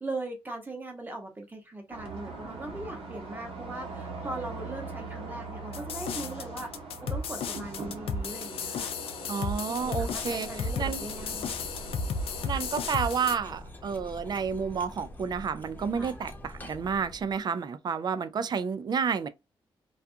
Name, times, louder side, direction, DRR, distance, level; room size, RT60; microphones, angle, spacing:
voice 1, 0.0-6.7 7.1-9.0 9.7-11.6 15.9-16.1, right 2 dB, 20° right, 0.9 m, -40 dB
sound 1, 1.9-13.0, right 3 dB, 90° right, 0.9 m, -42 dB
sound 2, 5.7-13.4, left 4 dB, 80° left, 0.4 m, -34 dB
voice 2, 9.3-11.1 12.4-19.3, right 6 dB, 45° right, 0.3 m, -30 dB
Cutlery silverware, 9.7-17.4, left 1 dB, 20° left, 0.8 m, -45 dB
2.4 x 2.3 x 2.6 m
cardioid pair, 95°, 10 cm